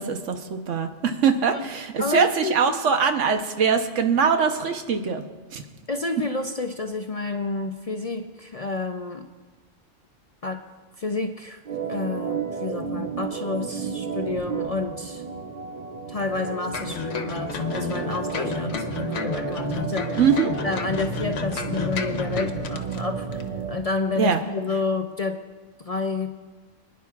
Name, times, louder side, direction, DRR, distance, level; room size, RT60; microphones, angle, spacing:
voice 1, 0.0-5.2 5.5-5.6 20.2-20.5 24.2-24.4, right 6 dB, 85° right, 6 dB, 1.2 m, -22 dB
voice 2, 2.0-2.6 5.9-9.3 10.4-10.6 11.0-11.6 11.9-15.2 16.1-20.3 20.6-25.4 25.8-26.3, left 3 dB, 45° left, 5 dB, 0.5 m, -29 dB
Organ, 11.7-23.8, right 5 dB, 45° right, 0.6 m, -32 dB
sound 1, 16.7-23.0 23.3-23.4, left 6 dB, 80° left, 1.2 m, -31 dB
28.5 x 10.0 x 2.4 m, 1.3 s
omnidirectional pair, 1.2 m